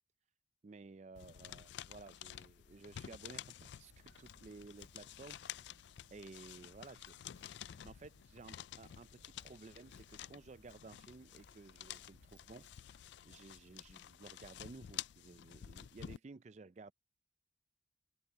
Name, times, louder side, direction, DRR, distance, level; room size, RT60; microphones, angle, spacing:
voice 1, 0.6-5.4 6.1-7.2 7.7-16.9, right 3 dB, 35° right, 0.4 m, -55 dB
sound 1, 1.2-16.2, left 11 dB, 65° left, 0.3 m, -51 dB
sound 2, 3.7-15.2, right 1 dB, 70° right, 1.6 m, -77 dB
Walk footsteps, 3.8-12.8, right 1 dB, 85° right, 1.7 m, -68 dB
open air
head